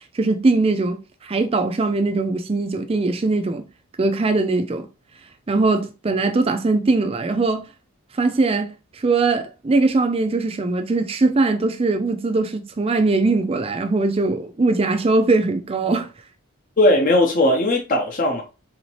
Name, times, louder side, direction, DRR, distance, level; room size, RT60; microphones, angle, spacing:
voice 1, 0.1-3.6 4.0-4.9 5.5-7.6 8.1-16.1, right 3 dB, 25° right, 0.4 m, -21 dB
voice 2, 16.8-18.4, left 1 dB, 35° left, 0.8 m, -18 dB
4.0 x 2.8 x 3.0 m
head